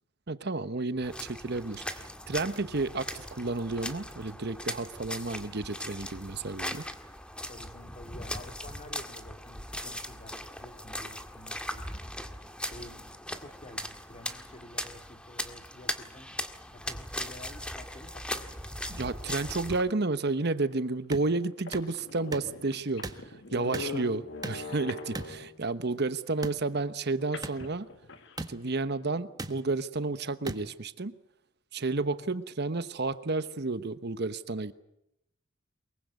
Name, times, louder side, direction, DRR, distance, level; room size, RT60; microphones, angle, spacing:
voice 1, 0.3-6.8 18.9-27.9 28.5-31.2 31.7-34.7, right 3 dB, 55° right, 12 dB, 1.1 m, -31 dB
sound 1, 1.0-19.8, left 1 dB, 5° left, 1.8 m, -39 dB
voice 2, 7.5-12.1 12.6-16.4 16.7-18.5, left 1 dB, 30° left, 7 dB, 2.2 m, -50 dB
sound 2, 20.6-20.7 21.3-21.4 21.6-25.7 27.3-28.4, left 3 dB, 60° left, 1.9 m, -41 dB
sound 3, 21.1-21.3 21.7-21.9 22.3-22.5 23.0-23.2 23.7-23.9 24.4-24.7 25.1-25.3 26.4-26.6 27.4-27.6 28.4-28.5 29.4-29.5 30.5-30.6, right 2 dB, 20° right, 1.6 m, -37 dB
23.5 x 22.5 x 8.2 m, 0.83 s
head